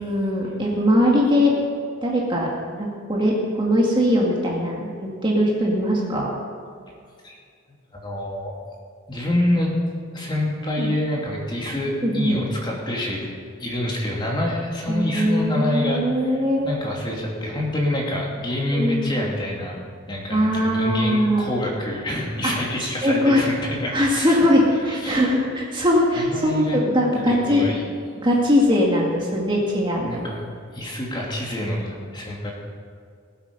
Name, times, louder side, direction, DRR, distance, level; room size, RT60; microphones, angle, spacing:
voice 1, 0.0-1.5 2.0-2.5 2.8-4.9 5.2-6.3 10.8-10.9 12.0-12.4 14.9-16.7 18.7-19.1 20.3-21.5 23.0-23.4 23.9-27.7 28.2-30.2, equal, 25° right, -2 dB, 2.0 m, -20 dB
voice 2, 7.9-8.5 9.1-9.8 10.1-13.2 13.6-19.8 20.1-24.5 24.8-25.2 26.1-26.8 27.1-27.8 30.0-32.5, left 1 dB, 20° left, -3 dB, 2.7 m, -27 dB
20.0 x 8.5 x 5.4 m, 2.2 s
head